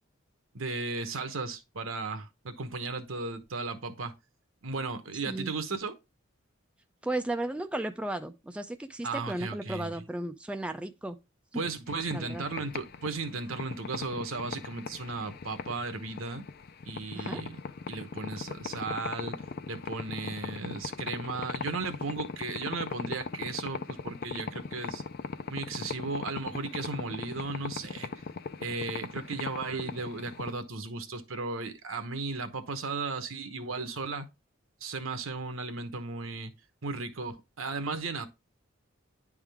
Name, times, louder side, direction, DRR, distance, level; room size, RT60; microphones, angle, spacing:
voice 1, 0.5-4.1 4.6-5.9 9.0-9.9 11.5-16.4 16.8-17.6 17.9-19.4 19.7-25.0 25.5-28.1 28.6-34.3 34.8-36.5 36.8-38.3, right 3 dB, 80° right, 1.0 m, -35 dB
voice 2, 7.0-11.2 11.5-11.6 12.1-12.4 17.1-17.4, right 1 dB, 5° right, 0.4 m, -34 dB
sound 1, 11.9-30.5, left 5 dB, 50° left, 0.5 m, -39 dB
9.9 x 3.6 x 3.4 m
head